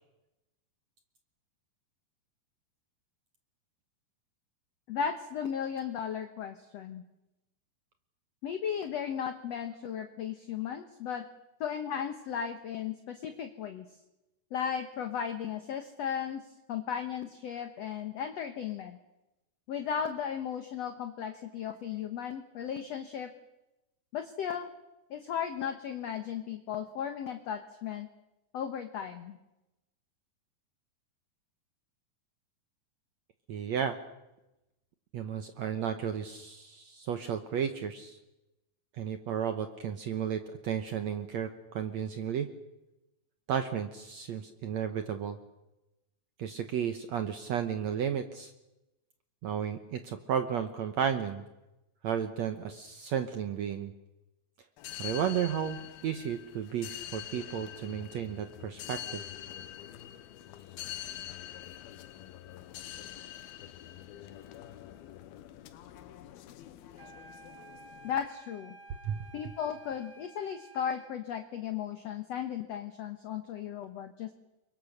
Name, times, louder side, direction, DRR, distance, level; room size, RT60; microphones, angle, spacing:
voice 1, 4.9-7.0 8.4-11.2 11.6-13.9 14.5-16.4 16.7-19.0 19.7-23.3 24.1-24.7 25.1-28.1 28.5-29.4 68.0-68.8 69.3-74.3, left 8 dB, 60° left, 8 dB, 1.8 m, -35 dB
voice 2, 33.5-34.0 35.1-38.2 39.0-42.5 43.5-45.4 46.4-48.5 49.4-51.4 52.0-53.9 55.0-59.2 69.0-69.3, right 8 dB, 65° right, 8 dB, 1.8 m, -33 dB
sound 1, 54.8-68.3, left 12 dB, 85° left, 2.9 m, -45 dB
sound 2, 66.9-71.2, right 3 dB, 45° right, 6.1 m, -53 dB
29.0 x 23.5 x 6.7 m, 0.96 s
omnidirectional pair, 4.3 m